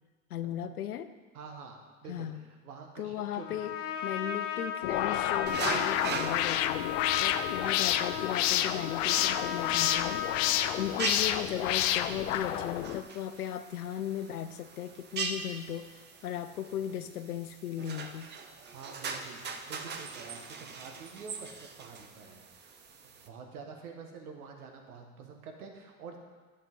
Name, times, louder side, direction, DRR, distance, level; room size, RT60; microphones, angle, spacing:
voice 1, 0.3-1.1 2.1-2.4 3.0-10.2 10.8-15.9 16.2-18.3, left 10 dB, 90° left, 11 dB, 0.8 m, -37 dB
voice 2, 1.3-3.7 16.8-16.9 18.7-22.7 23.3-26.2, right 5 dB, 80° right, 3 dB, 1.7 m, -48 dB
Trumpet, 3.4-11.0, left 8 dB, 30° left, 1.1 m, -36 dB
sound 1, 4.8-13.0, left 12 dB, 60° left, 0.7 m, -30 dB
sound 2, 5.5-23.3, right 4 dB, 25° right, 0.8 m, -41 dB
11.0 x 7.5 x 3.7 m, 1.4 s
hypercardioid pair, 105°, 44 cm